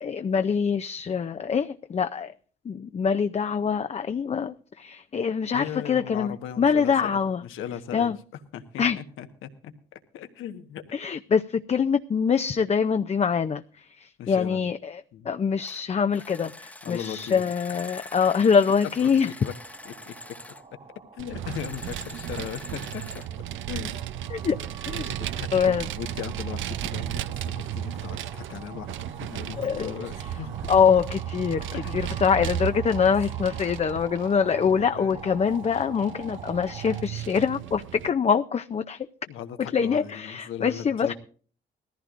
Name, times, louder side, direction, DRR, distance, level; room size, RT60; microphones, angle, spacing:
voice 1, 0.0-2.3 2.7-7.4 7.9-8.2 8.8-9.0 10.9-13.6 14.0-15.0 15.3-19.3 24.3-24.6 24.9-25.1 25.5-25.9 29.6-30.0 30.7-31.6 31.9-39.1 39.7-41.1, left 6 dB, 35° left, 0.5 m, -24 dB
voice 2, 5.5-8.1 8.5-9.7 10.1-10.8 14.2-14.6 15.1-15.3 16.8-17.4 17.7-17.8 19.0-19.5 19.8-20.1 21.1-23.0 23.7-23.9 24.6-24.7 25.0-30.5 31.7-32.0 34.7-35.2 39.3-41.1, left 9 dB, 85° left, 1.4 m, -38 dB
sound 1, 15.6-15.8 16.1-20.6 21.5-23.3, left 1 dB, 5° left, 0.9 m, -44 dB
sound 2, 19.4-37.0, right 3 dB, 30° right, 1.3 m, -46 dB
Vehicle, 21.2-38.1, right 11 dB, 75° right, 0.6 m, -35 dB
19.5 x 14.5 x 2.5 m
cardioid pair, 90°, 20 cm